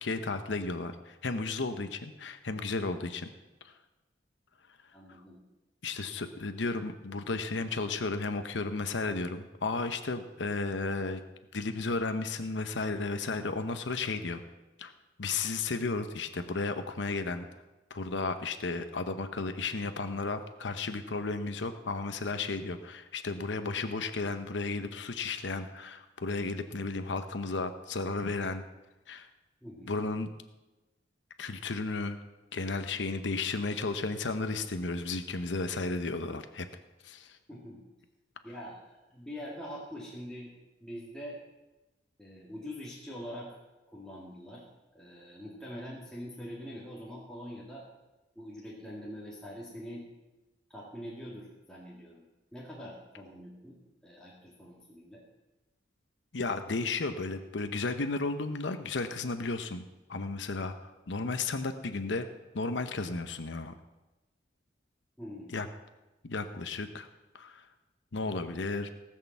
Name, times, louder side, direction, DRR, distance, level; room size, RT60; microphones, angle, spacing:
voice 1, 0.0-3.3 3.6-3.7 5.8-11.2 11.5-14.4 14.8-14.9 15.2-17.5 17.9-28.6 29.1-29.3 29.9-30.3 31.4-32.2 32.5-36.7 37.0-37.4 56.3-59.8 60.1-62.3 62.5-63.7 65.5-65.7 66.2-67.1 67.3-67.7 68.1-68.9, left 3 dB, 85° left, 8 dB, 0.8 m, -33 dB
voice 2, 4.9-5.4 29.6-29.9 37.5-37.8 38.4-38.9 39.1-40.5 40.8-41.4 42.2-43.6 43.9-44.6 44.9-47.8 48.4-50.1 50.7-52.2 52.5-55.2 65.2-65.5, equal, 5° left, -6 dB, 2.1 m, -44 dB
18.0 x 6.6 x 7.2 m, 1.1 s
head